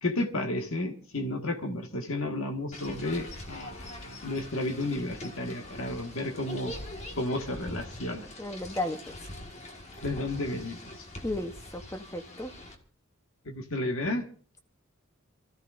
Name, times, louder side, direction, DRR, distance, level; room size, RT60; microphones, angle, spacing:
voice 1, 0.0-6.7 7.2-8.3 10.0-10.8 13.5-14.2, left 1 dB, 70° left, 1.7 m, -32 dB
sound 1, 2.7-12.8, left 1 dB, 30° left, 1.7 m, -43 dB
voice 2, 8.4-9.2 11.2-12.5, left 1 dB, 15° left, 0.9 m, -34 dB
28.0 x 14.0 x 2.6 m
head